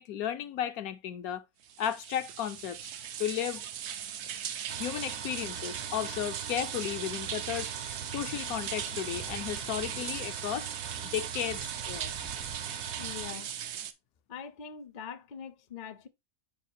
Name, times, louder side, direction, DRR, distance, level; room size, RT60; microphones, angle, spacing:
voice 1, 0.0-1.4 1.8-2.9 3.2-3.6 4.8-7.7 8.1-10.7 11.0-12.1, left 10 dB, 75° left, 1.1 m, -34 dB
sound 1, 1.6-13.9, right 9 dB, 75° right, 1.2 m, -39 dB
sound 2, 4.7-13.3, right 7 dB, 55° right, 0.9 m, -42 dB
sound 3, 7.8-13.2, right 1 dB, 5° right, 0.5 m, -56 dB
voice 2, 13.0-13.6 14.3-16.1, left 7 dB, 45° left, 0.6 m, -43 dB
7.2 x 4.9 x 2.7 m
omnidirectional pair, 1.6 m